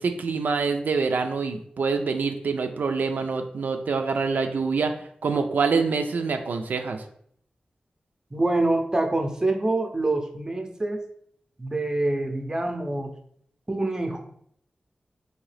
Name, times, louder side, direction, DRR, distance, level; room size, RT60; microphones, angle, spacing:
voice 1, 0.0-4.9 5.2-7.0, right 4 dB, 90° right, 6 dB, 0.3 m, -25 dB
voice 2, 8.3-11.0 11.6-13.1 13.7-14.2, right 2 dB, 20° right, 5 dB, 0.5 m, -26 dB
3.7 x 2.8 x 3.2 m, 0.66 s
wide cardioid pair, 110°, 3 cm